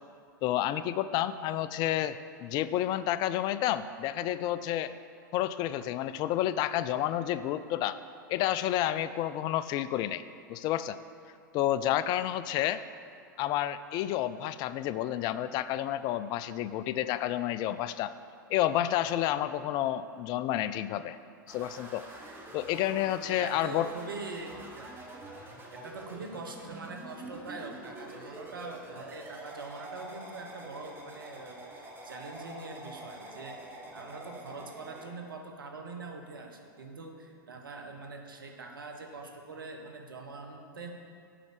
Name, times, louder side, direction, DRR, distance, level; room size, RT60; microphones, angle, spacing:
voice 1, 0.4-4.9 5.3-8.0 8.3-10.2 10.5-11.0 11.5-12.8 13.4-18.1 18.5-21.2 21.5-22.1 22.5-23.9, left 12 dB, 40° left, 14 dB, 0.3 m, -30 dB
sound 1, 21.5-35.1, right 2 dB, 20° right, 1.6 m, -46 dB
voice 2, 23.3-24.9 25.8-40.9, right 3 dB, 80° right, 3 dB, 1.2 m, -43 dB
7.5 x 5.3 x 6.7 m, 2.4 s
hypercardioid pair, 95°, 11 cm